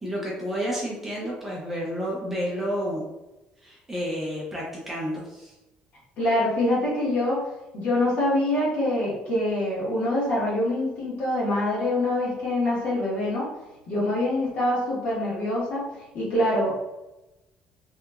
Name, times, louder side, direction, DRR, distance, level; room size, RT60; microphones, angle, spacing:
voice 1, 0.0-3.0 3.6-5.5, equal, 10° right, -5 dB, 0.5 m, -30 dB
voice 2, 6.2-13.5 13.9-15.8 16.1-16.9, left 1 dB, 50° left, -7 dB, 1.3 m, -25 dB
2.8 x 2.4 x 2.3 m, 0.99 s
cardioid pair, 155°, 3 cm